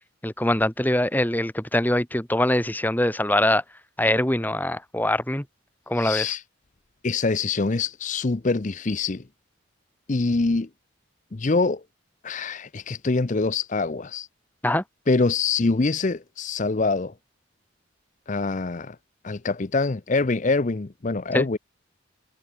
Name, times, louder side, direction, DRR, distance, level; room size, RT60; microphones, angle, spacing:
voice 1, 0.2-3.6 4.0-5.4 5.9-6.2 14.6-14.8 21.3-21.5, left 1 dB, 10° left, 1.4 m, -23 dB
voice 2, 6.0-6.4 7.0-9.2 10.1-10.7 11.3-11.8 12.2-14.3 15.1-17.1 18.3-19.0 19.2-21.6, left 3 dB, 35° left, 0.6 m, -24 dB
head